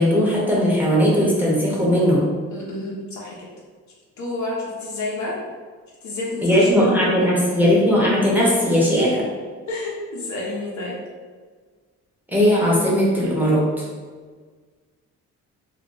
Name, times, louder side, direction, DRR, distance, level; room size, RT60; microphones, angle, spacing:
voice 1, 0.0-2.2 6.4-9.3 12.3-13.8, equal, 5° right, -6 dB, 0.9 m, -18 dB
voice 2, 2.5-3.5 4.2-5.4 6.0-7.3 9.7-11.0, left 2 dB, 70° left, -4 dB, 0.9 m, -30 dB
2.5 x 2.2 x 3.8 m, 1.5 s
cardioid pair, 90°, 30 cm